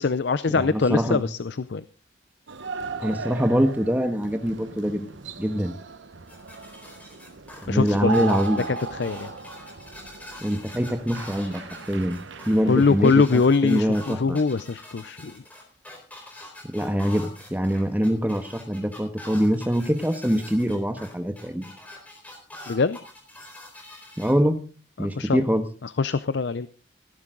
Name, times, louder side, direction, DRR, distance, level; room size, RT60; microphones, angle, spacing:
voice 1, 0.0-1.8 7.7-8.1 8.6-9.3 12.7-15.4 22.7-23.0 25.0-25.4 25.8-26.7, left 4 dB, 60° left, 14 dB, 0.5 m, -23 dB
voice 2, 0.5-1.2 3.0-5.1 5.4-5.7 7.6-8.7 10.4-11.6 11.9-12.2 12.4-14.4 16.7-21.7 24.2-24.6 25.0-25.6, equal, 10° right, 7 dB, 1.3 m, -24 dB
sound 1, 2.5-13.3, right 3 dB, 70° right, 0.9 m, -36 dB
sound 2, 6.3-24.3, left 1 dB, 10° left, 4.1 m, -44 dB
17.0 x 11.0 x 3.8 m, 0.38 s
head